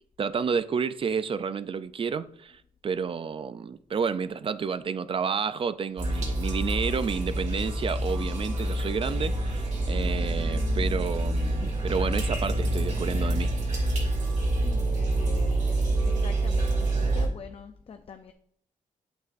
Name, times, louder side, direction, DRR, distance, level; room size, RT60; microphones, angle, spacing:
voice 1, 0.2-13.5, right 6 dB, 40° right, 0.4 m, -30 dB
sound 1, 6.0-17.3, right 1 dB, 55° right, 2.3 m, -27 dB
voice 2, 14.6-15.8 16.0-18.3, left 6 dB, 45° left, 0.5 m, -44 dB
8.1 x 7.9 x 2.6 m
wide cardioid pair, 125°, 14 cm